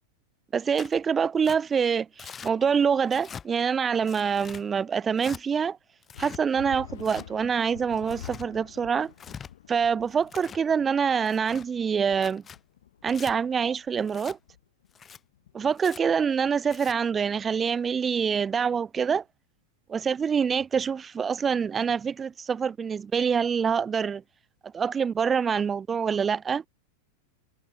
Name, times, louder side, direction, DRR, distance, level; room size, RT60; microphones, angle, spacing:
voice 1, 0.5-5.8 6.2-9.1 9.7-12.4 13.0-14.4 15.5-19.2 19.9-24.2 24.7-26.6, right 6 dB, 20° right, 0.4 m, -25 dB
Tearing, 0.8-1.0 1.4-1.6 2.2-2.5 3.1-3.5 4.0-4.6 5.2-5.4 6.0-6.4 7.0-7.3 7.9-8.5 9.1-9.5 10.1-10.6 11.2-11.7 12.1-12.6 13.1-13.3 14.1-14.4 14.9-15.2 15.8-16.0 16.6-16.9, left 7 dB, 20° left, 1.2 m, -43 dB
sound 1, 6.1-16.1, left 11 dB, 60° left, 1.8 m, -48 dB
figure-of-eight pair, 90°, 0 cm